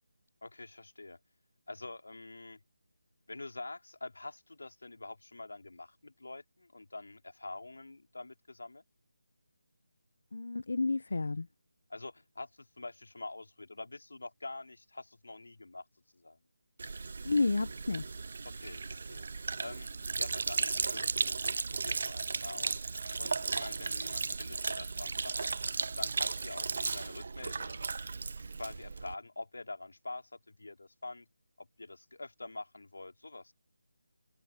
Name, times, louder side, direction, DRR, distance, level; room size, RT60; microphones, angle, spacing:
voice 1, 0.4-1.2 1.7-2.6 3.3-8.8 11.9-15.8 16.1-16.4 18.4-19.3 19.6-19.9 20.2-22.8 23.2-25.6 26.0-27.9 28.6-31.3 31.6-33.5, left 2 dB, 90° left, 3.7 m, -46 dB
voice 2, 10.3-11.5 17.2-18.1, left 3 dB, 70° left, 0.7 m, -31 dB
Sink (filling or washing), 16.8-29.1, right 4 dB, 55° right, 0.3 m, -35 dB
open air
figure-of-eight pair, 170°, 0 cm